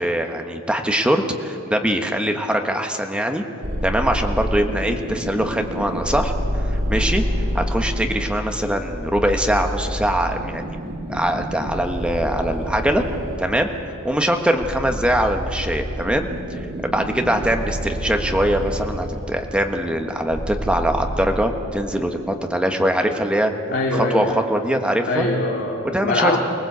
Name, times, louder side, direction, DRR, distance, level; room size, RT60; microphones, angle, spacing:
voice 1, 0.0-3.4 3.8-6.3 6.9-7.2 7.5-10.8 11.1-13.0 13.4-13.7 14.0-16.3 16.5-23.5 24.1-25.3 25.9-26.4, equal, 5° right, 4 dB, 1.3 m, -22 dB
sound 1, 3.6-21.4, equal, 50° right, 2.8 m, -28 dB
voice 2, 23.7-24.4 25.0-26.4, left 2 dB, 55° left, -2 dB, 2.4 m, -22 dB
24.0 x 19.5 x 8.1 m, 2.5 s
head